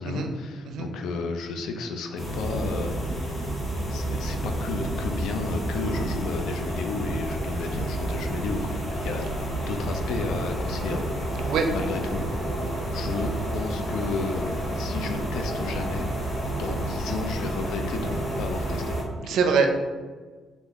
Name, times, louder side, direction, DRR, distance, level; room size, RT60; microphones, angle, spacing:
voice 1, 0.0-3.0 3.9-9.3 9.7-12.3 12.9-16.1 16.6-19.0 19.2-19.4, left 3 dB, 80° left, 5 dB, 0.4 m, -32 dB
sound 1, 2.2-19.0, right 1 dB, 35° left, 1.0 m, -30 dB
voice 2, 19.2-19.8, right 5 dB, 75° right, 5 dB, 0.4 m, -23 dB
3.5 x 2.5 x 3.5 m, 1.4 s
cardioid pair, 90°, 0 cm